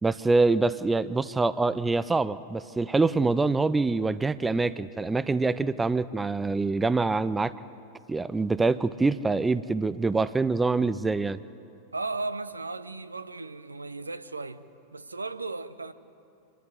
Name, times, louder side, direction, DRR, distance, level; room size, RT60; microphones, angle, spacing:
voice 1, 0.0-7.5 8.1-11.4, right 3 dB, 10° right, 0.5 m, -25 dB
voice 2, 11.9-14.6 14.9-15.9, right 3 dB, 80° right, 0.8 m, -35 dB
27.0 x 12.0 x 9.6 m
figure-of-eight pair, 90°, 0 cm